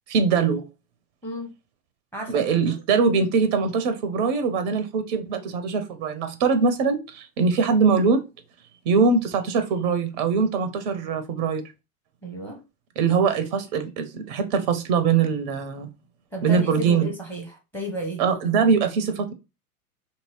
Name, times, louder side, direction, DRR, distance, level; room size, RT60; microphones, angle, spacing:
voice 1, 0.1-0.6 2.3-8.2 8.9-11.6 13.0-15.9 16.4-17.1 18.2-19.3, right 5 dB, 30° right, 0.4 m, -22 dB
voice 2, 2.1-2.7 12.2-12.6 16.3-17.5 17.7-18.2, equal, 5° left, 0.7 m, -33 dB
2.7 x 2.7 x 3.0 m
figure-of-eight pair, 90°, 45 cm